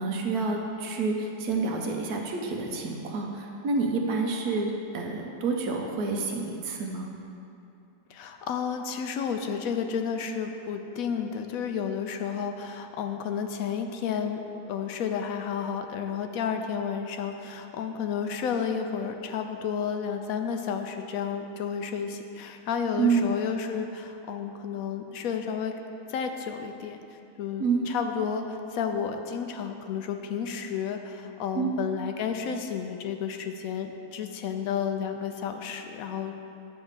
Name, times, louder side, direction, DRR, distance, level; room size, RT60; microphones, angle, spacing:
voice 1, 0.0-7.1 23.0-23.3 27.6-27.8 31.5-31.7, right 4 dB, 75° right, 2 dB, 1.3 m, -28 dB
voice 2, 8.1-14.4 14.7-25.7 26.1-27.0 27.4-36.3, left 7 dB, 70° left, 6 dB, 0.9 m, -31 dB
9.0 x 3.5 x 6.5 m, 2.7 s
omnidirectional pair, 1.6 m